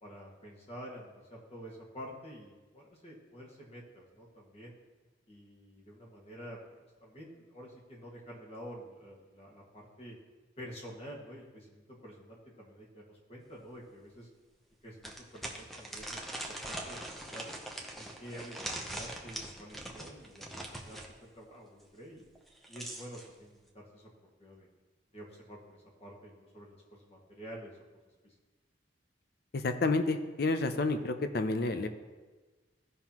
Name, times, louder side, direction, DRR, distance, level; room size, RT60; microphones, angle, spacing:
voice 1, 0.0-4.7 5.3-10.1 10.6-14.3 14.8-17.5 17.9-22.3 22.7-24.7 25.1-27.8 28.2-28.3, equal, 35° left, -3 dB, 1.8 m, -49 dB
sound 1, 13.5-13.6 14.1-14.2 15.0-21.1 22.3-23.3, right 1 dB, ahead, 0.8 m, -42 dB
voice 2, 29.5-31.9, left 3 dB, 55° left, 8 dB, 0.6 m, -30 dB
15.5 x 5.7 x 3.0 m, 1.3 s
head